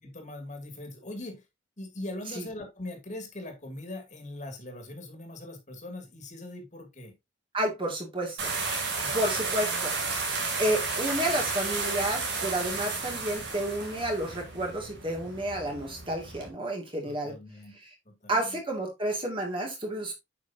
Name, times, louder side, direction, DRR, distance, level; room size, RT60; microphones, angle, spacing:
voice 1, 0.0-1.4 1.8-7.1 9.0-9.3 17.0-17.8 18.1-18.6, left 1 dB, 40° left, 2.5 m, -41 dB
voice 2, 7.5-8.5 9.1-9.9 10.6-17.4 18.3-20.1, right 1 dB, 25° right, 2.5 m, -30 dB
sound 1, 8.4-16.5, right 4 dB, 60° right, 3.0 m, -32 dB
9.3 x 6.1 x 2.8 m
head